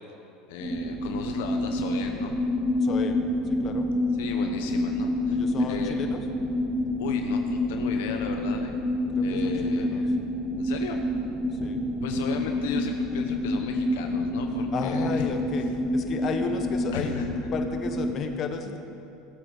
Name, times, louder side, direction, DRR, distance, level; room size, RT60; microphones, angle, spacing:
voice 1, 0.5-2.4 4.2-6.0 7.0-8.7 9.2-10.1 10.6-11.0 12.0-15.3 16.9-17.3, left 8 dB, 80° left, 4 dB, 0.9 m, -36 dB
sound 1, 0.6-18.2, left 1 dB, 5° right, 2.1 m, -28 dB
voice 2, 2.8-3.2 3.4-3.9 5.3-6.3 9.2-10.1 11.5-11.8 14.6-17.2 17.5-18.8, left 5 dB, 40° left, 5 dB, 1.4 m, -33 dB
16.5 x 8.0 x 6.7 m, 2.7 s
supercardioid pair, 100°, 0 cm